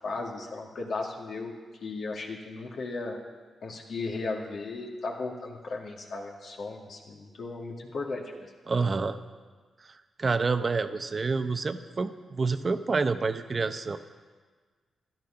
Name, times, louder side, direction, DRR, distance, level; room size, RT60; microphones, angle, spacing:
voice 1, 0.0-1.5 1.8-3.2 3.6-8.5, left 3 dB, 70° left, 0 dB, 2.1 m, -36 dB
voice 2, 8.7-9.2 10.2-14.0, right 4 dB, 45° right, 10 dB, 0.8 m, -28 dB
12.0 x 11.5 x 5.8 m, 1.5 s
supercardioid pair, 50°, 0 cm